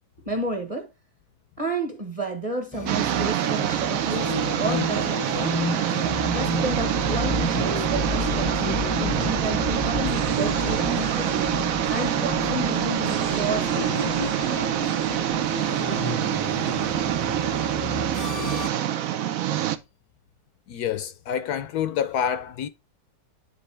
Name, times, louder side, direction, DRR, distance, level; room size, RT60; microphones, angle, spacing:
voice 1, 0.2-0.9 1.6-5.6 6.2-8.7 9.0-11.4 11.9-14.4, right 2 dB, 20° right, 1.2 m, -31 dB
sound 1, 2.7-18.7, left 3 dB, 25° left, 0.4 m, -31 dB
sound 2, 2.9-19.8, right 11 dB, 65° right, 0.9 m, -25 dB
voice 2, 20.7-22.7, left 8 dB, 70° left, 1.1 m, -27 dB
9.8 x 3.9 x 3.3 m
omnidirectional pair, 1.8 m